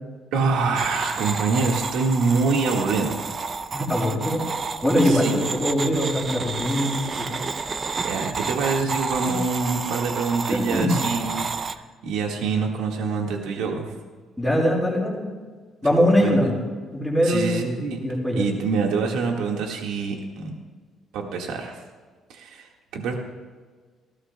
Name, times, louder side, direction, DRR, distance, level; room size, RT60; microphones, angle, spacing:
voice 1, 0.3-3.3 5.0-5.5 8.0-13.9 16.1-16.4 17.2-18.0 18.4-20.6 21.1-21.8 22.3-23.1, right 4 dB, 85° right, 1 dB, 1.7 m, -25 dB
sound 1, 0.8-11.7, right 4 dB, 25° right, 0.5 m, -30 dB
voice 2, 3.7-4.4 4.8-7.4 9.2-9.3 10.5-10.9 14.4-15.3 15.8-16.6 16.9-18.5, equal, ahead, -7 dB, 4.7 m, -22 dB
19.0 x 16.0 x 2.3 m, 1.5 s
cardioid pair, 175°, 0 cm